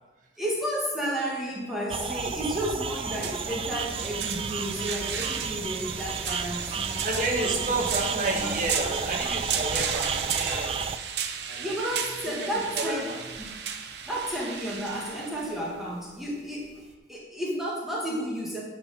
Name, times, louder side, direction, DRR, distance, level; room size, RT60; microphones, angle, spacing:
voice 1, 0.4-7.0 7.3-9.2 11.6-13.6 14.1-18.6, equal, ahead, -5 dB, 1.8 m, -32 dB
sound 1, 1.9-11.0, right 6 dB, 30° right, 0.4 m, -32 dB
sound 2, 2.3-16.9, right 7 dB, 65° right, 0.9 m, -35 dB
voice 2, 7.0-10.8 11.4-11.7 12.3-13.2, right 2 dB, 45° right, 0 dB, 1.7 m, -30 dB
11.0 x 5.3 x 6.4 m, 1.2 s
head